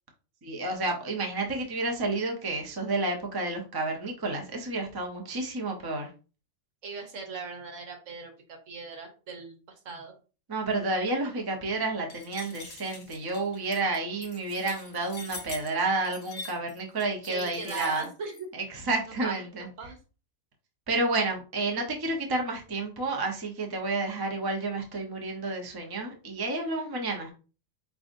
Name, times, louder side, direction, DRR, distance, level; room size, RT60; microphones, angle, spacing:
voice 1, 0.4-6.1 10.5-18.1 18.5-19.7 20.9-27.3, right 2 dB, 20° right, 2 dB, 0.7 m, -30 dB
voice 2, 6.8-9.5 9.8-10.1 17.2-18.5 19.2-19.4 19.8-20.0, right 4 dB, 75° right, 3 dB, 1.4 m, -39 dB
sound 1, 12.1-18.4, left 4 dB, 65° left, 1.2 m, -44 dB
5.0 x 3.5 x 2.6 m, 0.34 s
omnidirectional pair, 1.4 m